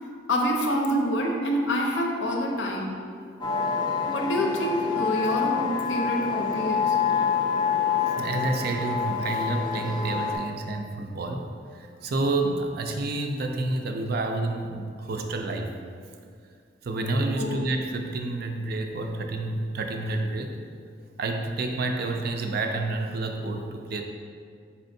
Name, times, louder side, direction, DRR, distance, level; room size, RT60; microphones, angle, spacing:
voice 1, 0.3-3.0 4.1-7.0 17.4-17.6, equal, 75° left, 1 dB, 0.6 m, -26 dB
sound 1, 3.4-10.4, left 6 dB, 25° left, 0.5 m, -27 dB
voice 2, 8.0-15.7 16.8-20.5 21.2-24.0, right 2 dB, 55° right, 4 dB, 0.4 m, -29 dB
4.3 x 4.3 x 2.6 m, 2.2 s
head